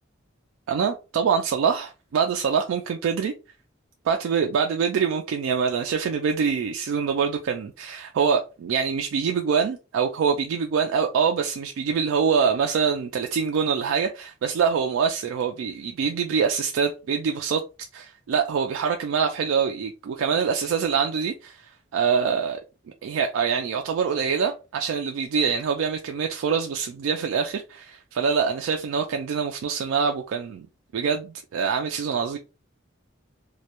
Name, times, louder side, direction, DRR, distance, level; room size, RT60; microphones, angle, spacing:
voice 1, 0.7-3.3 4.1-17.6 17.9-22.6 23.0-30.7 30.9-32.4, right 6 dB, 80° right, 0.3 m, -25 dB
2.2 x 2.1 x 2.8 m
head